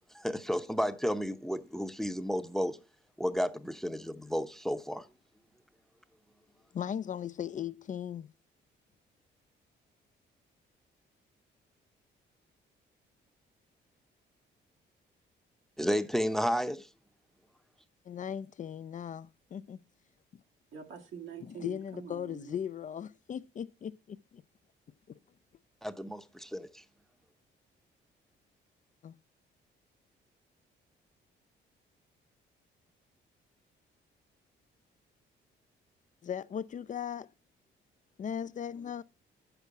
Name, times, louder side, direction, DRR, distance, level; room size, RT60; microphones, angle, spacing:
voice 1, 0.1-2.8 3.2-5.1 15.8-16.9 25.8-26.8, equal, ahead, 0.7 m, -32 dB
voice 2, 6.7-8.3 18.1-19.8 21.4-24.4 29.0-29.1 36.2-37.3 38.2-39.0, left 8 dB, 40° left, 0.4 m, -38 dB
voice 3, 20.7-22.5, right 7 dB, 85° right, 1.9 m, -45 dB
8.2 x 6.8 x 4.6 m
cardioid pair, 90°, 20 cm